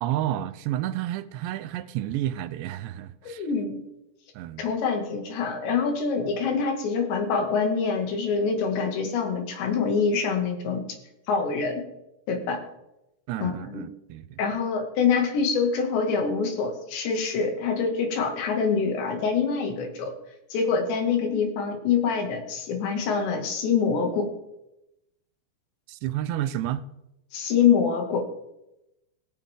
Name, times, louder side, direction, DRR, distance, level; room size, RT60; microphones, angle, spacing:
voice 1, 0.0-3.5 4.4-4.7 13.3-14.4 25.9-26.8, right 12 dB, 80° right, 2.8 m, -30 dB
voice 2, 3.2-3.8 4.6-10.8 11.3-11.8 12.3-12.6 13.4-13.8 14.4-20.1 20.5-24.3 27.3-28.3, left 5 dB, 80° left, 4.4 m, -25 dB
17.5 x 16.5 x 3.7 m
omnidirectional pair, 5.1 m